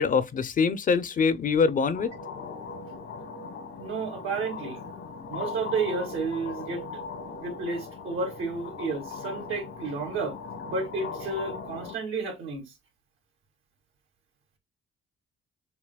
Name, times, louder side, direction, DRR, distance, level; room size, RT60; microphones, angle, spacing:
voice 1, 0.0-2.1, left 5 dB, 40° left, 0.6 m, -24 dB
sound 1, 1.9-12.0, left 4 dB, 85° left, 1.5 m, -39 dB
voice 2, 3.8-4.8 5.3-6.9 7.4-10.4 10.7-12.7, right 4 dB, 80° right, 2.2 m, -31 dB
6.9 x 2.9 x 2.2 m
cardioid pair, 90°, 20 cm